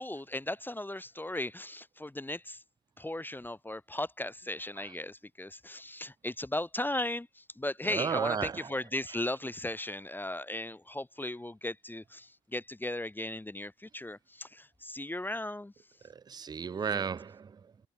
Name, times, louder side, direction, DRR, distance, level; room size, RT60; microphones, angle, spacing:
voice 1, 0.0-2.6 3.0-15.7, left 1 dB, 10° left, 0.8 m, -37 dB
voice 2, 7.8-8.7 16.3-17.6, right 6 dB, 20° right, 0.3 m, -33 dB
cardioid pair, 90°, 20 cm